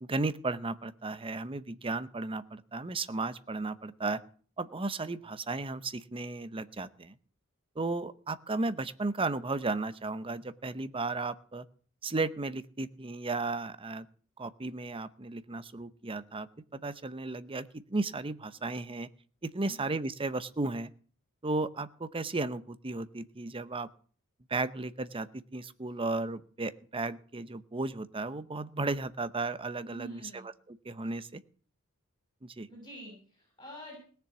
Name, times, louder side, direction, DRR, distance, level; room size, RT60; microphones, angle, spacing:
voice 1, 0.0-4.2 4.6-7.1 7.8-11.7 12.0-14.1 14.4-19.1 19.4-20.9 21.4-23.9 24.5-31.4 32.4-32.7, right 3 dB, 25° right, 14 dB, 0.8 m, -34 dB
voice 2, 29.9-30.4 32.7-34.0, right 1 dB, 20° left, 0 dB, 6.9 m, -47 dB
18.0 x 7.0 x 8.3 m, 0.43 s
head